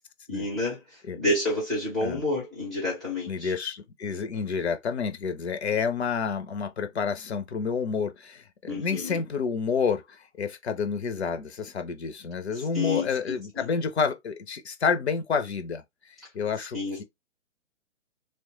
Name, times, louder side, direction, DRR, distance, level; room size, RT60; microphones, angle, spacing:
voice 1, 0.3-0.8 1.2-3.5 8.7-9.2 12.7-13.7 16.7-17.0, left 2 dB, ahead, 0.4 m, -29 dB
voice 2, 3.3-17.0, left 5 dB, 55° left, 0.5 m, -29 dB
3.0 x 2.1 x 2.9 m
figure-of-eight pair, 130°, 39 cm